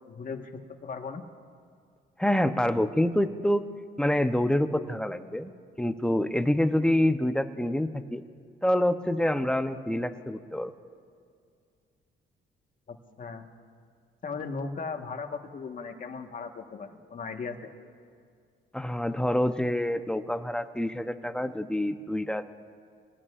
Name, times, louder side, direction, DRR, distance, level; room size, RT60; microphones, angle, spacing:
voice 1, 0.1-1.2 12.9-13.5 14.2-17.7, left 4 dB, 45° left, 5 dB, 1.4 m, -37 dB
voice 2, 2.2-3.6 4.0-5.5 5.8-8.2 8.6-10.7 18.7-22.4, left 1 dB, 5° left, 9 dB, 0.7 m, -26 dB
25.0 x 18.0 x 2.5 m, 2.2 s
cardioid pair, 90°, 20 cm